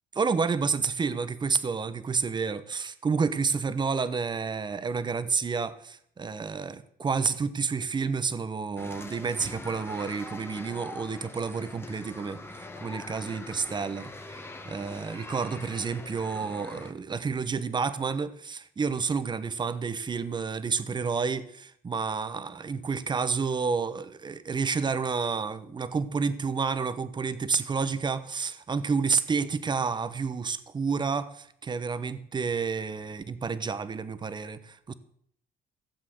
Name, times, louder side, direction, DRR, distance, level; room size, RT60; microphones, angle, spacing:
voice 1, 0.2-14.1 14.7-34.9, right 5 dB, 25° right, 14 dB, 1.1 m, -30 dB
sound 1, 8.8-16.9, left 2 dB, 15° left, 1.6 m, -43 dB
16.0 x 7.5 x 7.7 m, 0.67 s
cardioid pair, 110°, 17 cm